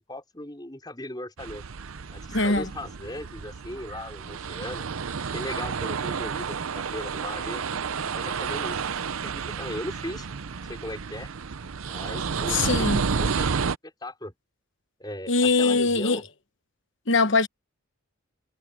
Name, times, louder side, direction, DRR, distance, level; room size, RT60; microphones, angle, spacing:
voice 1, 0.0-1.6 2.1-4.9 5.2-7.6 8.0-8.8 9.1-10.3 10.7-11.3 11.9-13.5 13.8-14.3 15.0-16.2, left 1 dB, 20° left, 4.8 m, -38 dB
sound 1, 1.4-13.8, right 5 dB, 80° right, 0.7 m, -31 dB
voice 2, 2.3-2.7 12.5-13.0 15.3-16.2 17.1-17.5, left 3 dB, 60° left, 1.2 m, -22 dB
head